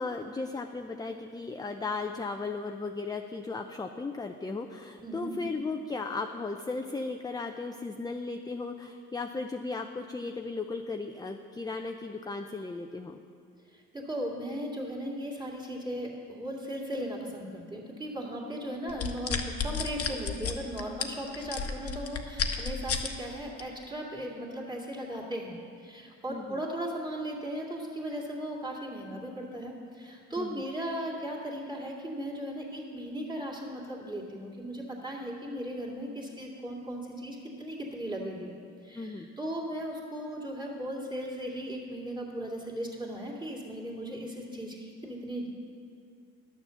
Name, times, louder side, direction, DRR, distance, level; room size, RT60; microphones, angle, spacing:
voice 1, 0.0-13.2 26.3-26.6 30.4-30.6 38.9-39.3, left 3 dB, 15° left, 5 dB, 0.5 m, -36 dB
voice 2, 5.0-5.3 13.7-38.5 38.8-45.5, equal, 15° right, -3 dB, 2.4 m, -37 dB
sound 1, 18.9-23.1 23.6-23.8, left 6 dB, 50° left, 1.0 m, -32 dB
11.5 x 7.0 x 7.0 m, 2.3 s
cardioid pair, 90°, 30 cm